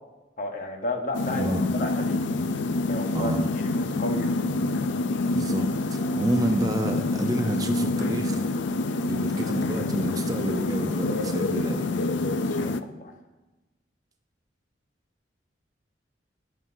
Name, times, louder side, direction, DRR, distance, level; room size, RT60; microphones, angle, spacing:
voice 1, 0.4-1.5 1.8-2.2 2.9-4.3 12.5-12.7 13.0-13.1, left 1 dB, 40° left, 3 dB, 1.1 m, -32 dB
sound 1, 1.1-12.8, left 2 dB, 70° left, 0.5 m, -27 dB
voice 2, 1.4-1.7 3.1-3.5 4.7-5.0 5.2-8.5 9.1-11.9, right 1 dB, 20° right, 4 dB, 0.6 m, -29 dB
18.5 x 7.3 x 2.7 m, 1.1 s
head